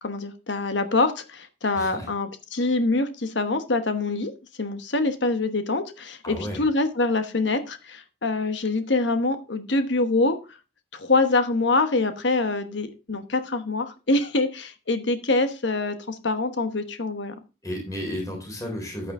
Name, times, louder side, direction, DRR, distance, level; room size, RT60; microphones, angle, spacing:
voice 1, 0.0-4.3 4.6-10.4 10.9-17.3, left 3 dB, 70° left, 9 dB, 1.1 m, -25 dB
voice 2, 1.8-2.1 6.2-6.6 17.6-19.1, equal, 15° left, 0 dB, 3.7 m, -32 dB
10.5 x 8.9 x 3.7 m, 0.30 s
head